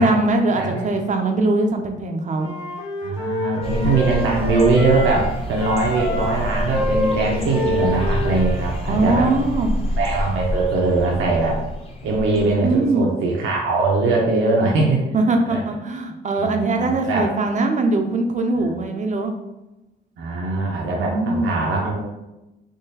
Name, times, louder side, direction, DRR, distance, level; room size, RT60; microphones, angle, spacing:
voice 1, 0.0-2.5 8.9-9.8 12.3-13.1 15.1-19.3 21.0-21.5, right 2 dB, 40° right, 4 dB, 0.5 m, -21 dB
voice 2, 0.6-0.9 3.0-9.3 10.0-11.6 12.0-15.0 15.5-15.6 16.4-17.3 18.6-18.8 20.2-22.0, right 3 dB, 80° right, -3 dB, 0.8 m, -21 dB
Wind instrument woodwind instrument, 2.3-5.3 5.6-8.7, left 1 dB, 65° left, 1.4 m, -27 dB
sound 1, 3.6-12.8, left 1 dB, 30° left, 0.8 m, -27 dB
3.7 x 3.0 x 2.8 m, 0.97 s
cardioid pair, 90°, 20 cm